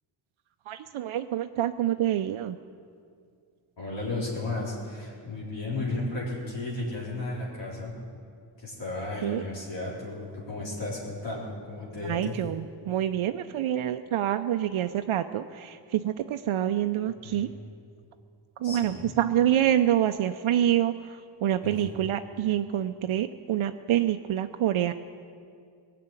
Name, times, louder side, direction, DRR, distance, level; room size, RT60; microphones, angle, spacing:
voice 1, 0.7-2.6 9.2-9.4 12.0-17.5 18.6-24.9, right 11 dB, 85° right, 8 dB, 0.6 m, -27 dB
voice 2, 3.8-8.0 8.6-12.3 17.2-17.4 18.6-19.1 21.6-21.8, left 2 dB, 65° left, -5 dB, 3.8 m, -34 dB
19.0 x 6.8 x 8.9 m, 2.3 s
wide cardioid pair, 95°, 47 cm